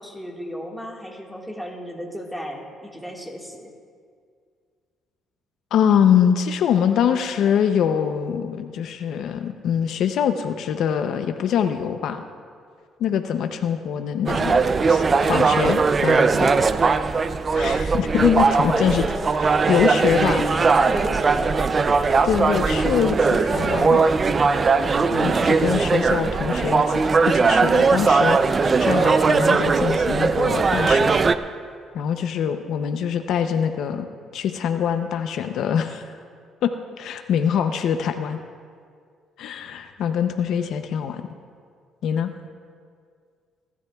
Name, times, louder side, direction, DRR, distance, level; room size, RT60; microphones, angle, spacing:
voice 1, 0.0-3.7 18.7-19.3 20.3-22.1, equal, ahead, -1 dB, 1.7 m, -33 dB
voice 2, 5.7-12.2 13.0-14.6 14.9-16.5 16.9-17.0 17.5-19.0 19.7-20.4 22.2-24.0 25.1-31.2 31.9-34.1 34.3-36.2 36.6-38.4 39.4-41.3 42.0-42.3, left 8 dB, 65° left, 7 dB, 0.6 m, -24 dB
sound 1, 14.3-31.4, right 4 dB, 30° right, 0.4 m, -19 dB
27.0 x 12.0 x 2.3 m, 2.1 s
cardioid pair, 130°, 0 cm